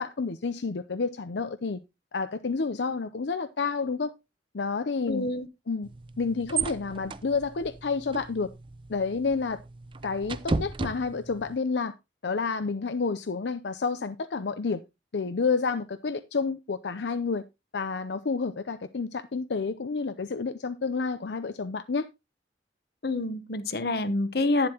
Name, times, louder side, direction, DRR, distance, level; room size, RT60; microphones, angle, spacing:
voice 1, 0.0-1.8 2.1-4.1 4.5-5.3 5.7-5.9 6.2-8.5 8.9-9.6 10.0-11.9 12.2-14.8 15.1-17.4 17.7-22.1, left 4 dB, 80° left, 0.6 m, -29 dB
voice 2, 5.1-5.5 23.0-24.7, left 2 dB, 60° left, 0.9 m, -27 dB
sound 1, 5.8-11.6, right 4 dB, 30° right, 0.5 m, -35 dB
11.0 x 9.7 x 2.9 m
head